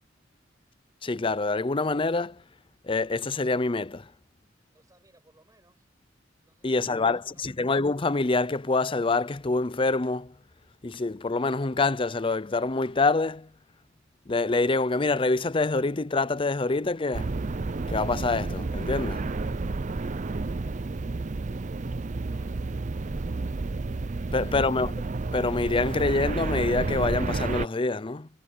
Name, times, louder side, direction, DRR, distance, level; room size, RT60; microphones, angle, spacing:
voice 1, 1.0-2.4 2.8-4.1 6.6-10.3 10.8-13.5 14.3-17.3 17.9-19.3 24.3-24.9 25.3-28.3, left 3 dB, 30° left, 0.6 m, -26 dB
voice 2, 4.5-5.9 6.4-7.5, right 1 dB, 20° right, 7.8 m, -63 dB
sound 1, 17.1-27.7, right 3 dB, 40° right, 0.6 m, -31 dB
head